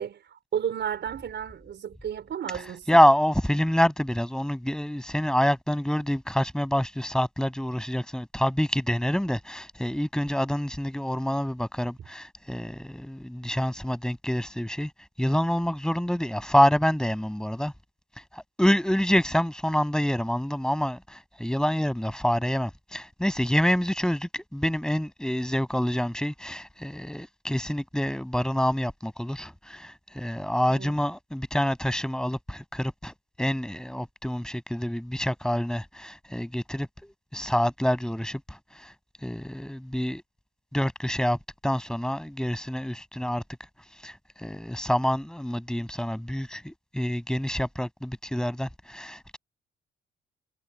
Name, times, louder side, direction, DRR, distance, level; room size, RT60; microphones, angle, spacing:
voice 1, 0.0-2.9 30.7-31.0, right 9 dB, 60° right, 4.6 m, -33 dB
voice 2, 2.9-14.9 15.2-17.7 18.3-38.9 39.2-40.2 40.7-43.4 44.0-49.4, equal, 5° left, 7.8 m, -27 dB
cardioid pair, 90°, 20 cm